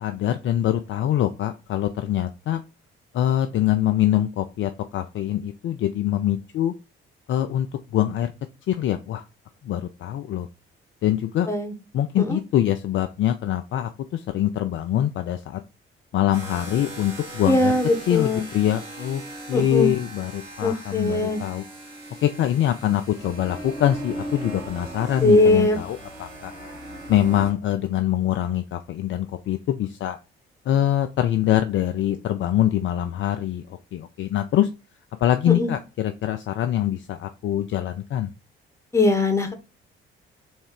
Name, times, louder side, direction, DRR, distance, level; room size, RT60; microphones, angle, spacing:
voice 1, 0.0-2.6 3.1-6.7 7.3-7.7 7.9-8.3 8.7-9.2 9.6-10.5 11.0-11.5 11.9-15.6 16.1-17.7 18.1-19.2 19.5-21.6 22.2-26.5 27.1-30.2 30.7-34.7 35.2-38.3, left 11 dB, 40° left, 8 dB, 0.4 m, -24 dB
sound 1, 16.3-27.5, right 1 dB, 70° right, 1.8 m, -38 dB
voice 2, 17.4-18.4 19.5-19.9 20.6-21.4 25.2-25.8 35.5-35.7 38.9-39.5, left 2 dB, 10° left, 6 dB, 1.2 m, -20 dB
3.5 x 3.2 x 4.7 m, 0.30 s
figure-of-eight pair, 45°, 29 cm